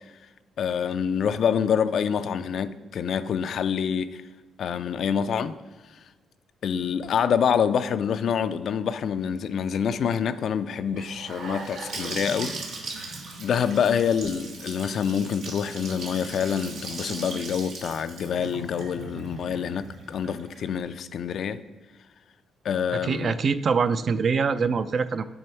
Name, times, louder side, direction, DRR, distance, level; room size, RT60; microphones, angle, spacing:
voice 1, 0.6-4.2 4.6-5.6 6.6-12.6 13.1-21.6 22.6-23.3, left 7 dB, 60° left, 0.3 m, -26 dB
Gurgling / Sink (filling or washing) / Bathtub (filling or washing), 11.0-20.8, right 3 dB, 85° right, 1.2 m, -38 dB
voice 2, 22.9-25.3, right 5 dB, 50° right, 0.3 m, -24 dB
6.4 x 4.2 x 4.5 m
cardioid pair, 90°, 0 cm